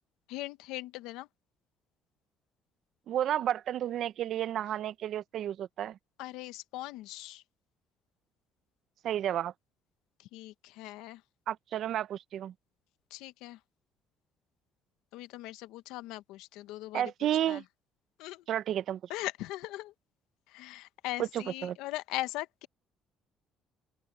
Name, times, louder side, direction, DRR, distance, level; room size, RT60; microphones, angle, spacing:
voice 1, 0.3-1.3 6.2-7.4 10.2-11.2 13.1-13.6 15.1-17.1 17.5-17.6 18.2-18.4 19.1-19.9 20.5-22.7, left 17 dB, 90° left, 0.9 m, -40 dB
voice 2, 3.1-6.0 9.0-9.5 11.5-12.5 16.9-17.6 18.5-19.0 21.2-21.8, right 11 dB, 60° right, 0.8 m, -31 dB
open air
cardioid pair, 105°, 0 cm